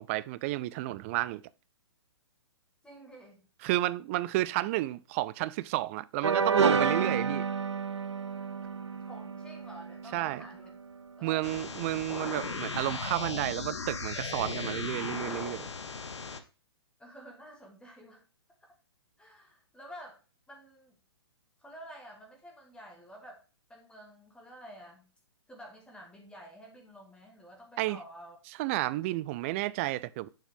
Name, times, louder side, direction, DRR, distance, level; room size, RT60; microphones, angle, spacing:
voice 1, 0.0-1.4 3.6-7.4 10.1-10.4 11.2-15.7 27.8-28.0 28.6-30.3, right 17 dB, 30° right, 0.3 m, -31 dB
voice 2, 2.8-3.4 9.0-10.7 11.2-11.8 17.0-18.2 19.2-20.2 20.5-20.9 21.6-23.4 23.7-25.1 25.5-28.4, equal, 5° left, 1.4 m, -50 dB
sound 1, 6.2-11.1, right 5 dB, 85° right, 0.6 m, -30 dB
sound 2, 11.4-16.4, left 4 dB, 75° left, 1.0 m, -37 dB
6.8 x 5.7 x 3.6 m
figure-of-eight pair, 125°, 14 cm